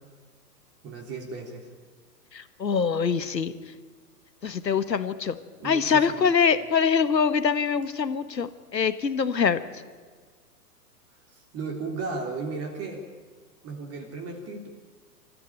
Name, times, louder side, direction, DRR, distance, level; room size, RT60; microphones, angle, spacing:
voice 1, 0.8-1.7 5.6-6.3 11.3-13.0 13.6-14.7, right 4 dB, 30° right, 2 dB, 3.4 m, -35 dB
voice 2, 2.3-3.5 4.4-5.4 5.6-8.5 8.7-9.6, left 6 dB, 85° left, 12 dB, 1.5 m, -24 dB
26.5 x 14.5 x 9.1 m, 1.5 s
figure-of-eight pair, 110°, 49 cm